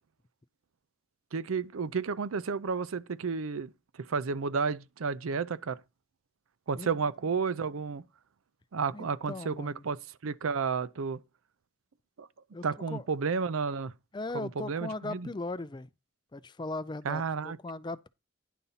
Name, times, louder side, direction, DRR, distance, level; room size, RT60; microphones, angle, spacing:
voice 1, 1.3-3.7 4.1-5.8 6.7-8.0 8.7-11.2 12.2-12.3 12.6-13.9 14.3-15.3 17.0-17.6, right 5 dB, 85° right, 0.5 m, -32 dB
voice 2, 8.9-9.9 12.5-13.0 14.1-15.9 16.3-18.1, left 2 dB, 20° left, 0.4 m, -38 dB
10.5 x 4.1 x 5.6 m
head